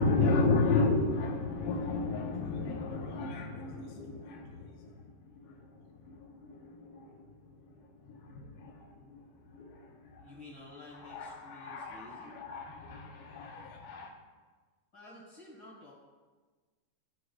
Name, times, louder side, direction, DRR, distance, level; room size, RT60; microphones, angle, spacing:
voice 1, 0.0-4.9 6.2-6.3 6.6-7.1 8.2-8.7 9.1-9.2 9.5-9.8 10.9-14.1, left 3 dB, 75° left, -3 dB, 2.4 m, -32 dB
voice 2, 10.2-12.4 14.9-15.9, left 2 dB, 40° left, -6 dB, 1.7 m, -51 dB
13.5 x 4.5 x 2.4 m, 1.3 s
omnidirectional pair, 4.6 m